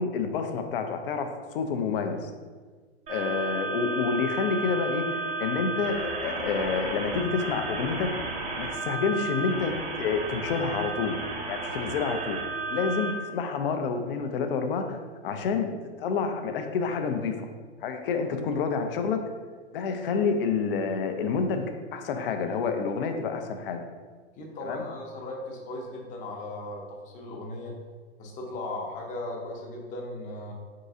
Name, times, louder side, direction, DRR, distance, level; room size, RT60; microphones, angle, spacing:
voice 1, 0.0-2.3 3.1-8.1 8.6-11.2 11.5-15.0 15.2-15.7 16.0-17.5 17.8-19.2 19.7-21.6 21.9-23.9 24.6-24.8, left 5 dB, 55° left, 6 dB, 0.6 m, -28 dB
sound 1, 3.1-13.1, right 3 dB, 20° right, 0.5 m, -33 dB
voice 2, 24.4-27.8 28.2-30.5, left 2 dB, 25° left, 0 dB, 0.7 m, -37 dB
3.9 x 3.7 x 2.6 m, 1.5 s
hypercardioid pair, 120°, 34 cm